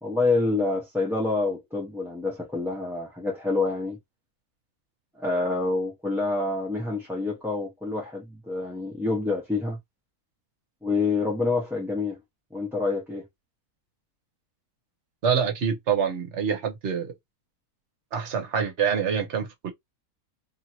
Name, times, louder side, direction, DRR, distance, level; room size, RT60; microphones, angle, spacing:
voice 1, 0.0-4.0 5.2-9.8 10.8-12.2 12.5-13.3, left 3 dB, ahead, 0.7 m, -27 dB
voice 2, 15.2-17.1 18.1-19.7, right 7 dB, 55° right, 1.2 m, -26 dB
3.0 x 2.7 x 2.8 m
omnidirectional pair, 1.6 m